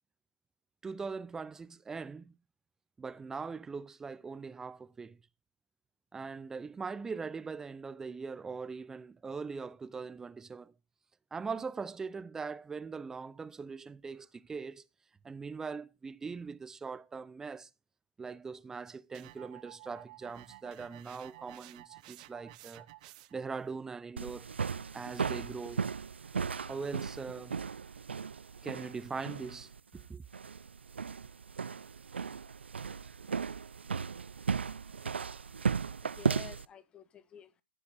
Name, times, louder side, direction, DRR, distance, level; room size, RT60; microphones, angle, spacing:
voice 1, 0.8-2.3 3.0-5.2 6.1-10.7 11.3-14.8 15.2-17.7 18.2-22.9 23.3-24.5 24.9-25.9 26.7-27.6 28.6-30.2, right 5 dB, 10° right, 0.6 m, -41 dB
sound 1, 19.1-23.5, right 18 dB, 40° right, 0.9 m, -53 dB
sound 2, 24.2-36.7, right 6 dB, 85° right, 0.6 m, -36 dB
voice 2, 35.9-37.6, left 9 dB, 15° left, 1.5 m, -51 dB
15.0 x 7.0 x 4.3 m
hypercardioid pair, 135°, 6 cm